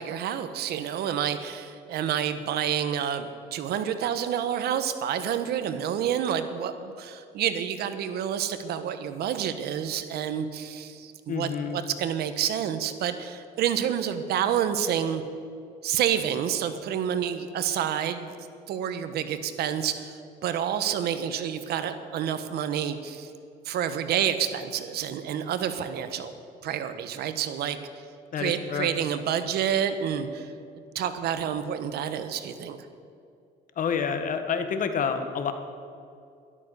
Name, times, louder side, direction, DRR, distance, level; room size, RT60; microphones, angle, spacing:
voice 1, 0.0-15.2 15.8-18.4 18.7-23.3 23.6-26.3 26.6-27.8 28.3-30.5 30.9-32.8, right 9 dB, 70° right, 10 dB, 1.1 m, -29 dB
voice 2, 11.3-11.8 28.3-28.9 33.8-35.5, left 6 dB, 50° left, 8 dB, 1.5 m, -28 dB
12.5 x 12.5 x 6.7 m, 2.4 s
cardioid pair, 110°, 17 cm